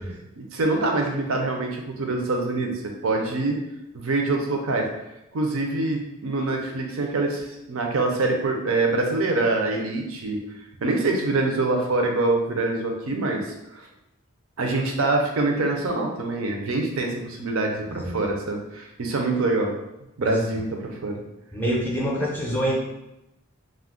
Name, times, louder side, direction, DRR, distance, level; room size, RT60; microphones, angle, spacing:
voice 1, 0.4-2.7 3.0-3.6 3.9-4.9 5.3-10.4 10.8-13.5 13.7-13.9 14.6-19.7 20.2-21.2, right 2 dB, 75° right, 2 dB, 0.5 m, -25 dB
voice 2, 21.5-22.8, equal, 10° left, -5 dB, 0.5 m, -26 dB
2.3 x 2.1 x 3.6 m, 0.90 s
head